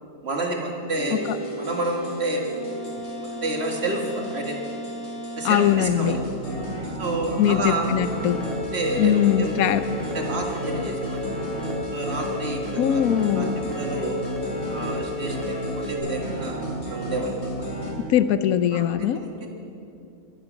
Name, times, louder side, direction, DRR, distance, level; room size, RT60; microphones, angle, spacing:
voice 1, 0.2-1.2 1.5-2.5 3.1-4.6 5.4-6.2 7.0-7.9 8.7-9.7 10.1-11.4 11.9-13.0 13.3-14.2 14.7-17.4 18.7-19.5, right 2 dB, 45° right, 1 dB, 2.0 m, -29 dB
sound 1, 0.9-17.9, right 1 dB, 50° left, 3.0 m, -33 dB
voice 2, 5.4-6.2 7.4-8.4 9.0-9.8 12.8-13.6 18.1-19.2, left 10 dB, 85° left, 13 dB, 1.1 m, -21 dB
sound 2, 8.0-16.0, left 2 dB, ahead, 2.0 m, -33 dB
21.5 x 9.7 x 6.1 m, 2.6 s
omnidirectional pair, 1.5 m